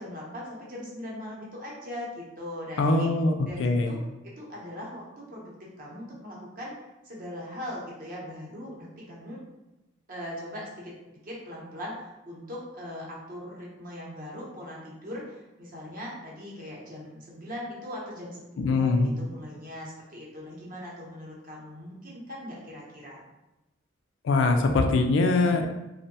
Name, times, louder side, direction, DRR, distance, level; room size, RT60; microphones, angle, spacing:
voice 1, 0.0-3.1 3.5-6.7 7.0-9.4 10.1-10.9 11.2-11.9 12.3-23.2, left 1 dB, 45° right, -5 dB, 0.7 m, -40 dB
voice 2, 2.8-3.3 3.6-3.9 18.6-19.1 24.2-25.7, left 3 dB, 65° left, 5 dB, 0.3 m, -22 dB
2.6 x 2.1 x 2.7 m, 0.99 s
head